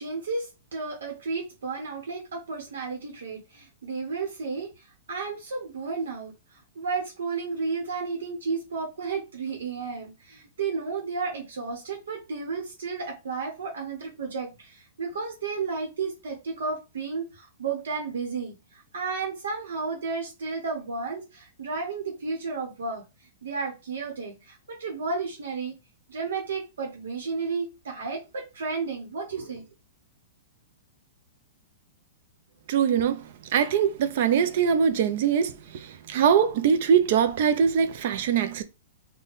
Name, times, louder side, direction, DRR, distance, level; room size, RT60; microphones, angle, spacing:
voice 1, 0.0-23.0 23.4-25.7 26.1-29.6, right 4 dB, 85° right, 1.0 m, -33 dB
voice 2, 32.7-33.2 33.5-38.6, right 7 dB, 55° right, 0.5 m, -22 dB
3.9 x 2.2 x 3.6 m
hypercardioid pair, 150°, 0 cm